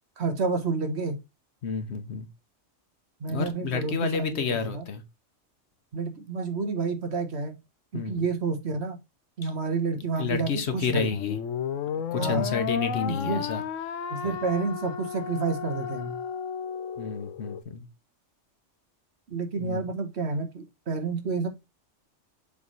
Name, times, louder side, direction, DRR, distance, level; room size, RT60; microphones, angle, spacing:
voice 1, 0.2-1.2 3.2-4.5 4.7-4.8 5.9-7.6 7.9-9.0 9.4-11.1 12.2-12.5 13.1-13.4 14.1-16.2 19.3-21.5, right 4 dB, 60° right, 1.4 m, -29 dB
voice 2, 1.6-2.3 3.3-5.0 7.9-8.3 9.4-9.5 10.2-11.4 12.1-13.6 14.2-14.4 17.0-17.9 19.6-19.9, left 5 dB, 60° left, 1.2 m, -30 dB
sound 1, 11.1-17.6, left 8 dB, 85° left, 1.0 m, -33 dB
7.1 x 3.3 x 4.0 m
omnidirectional pair, 1.3 m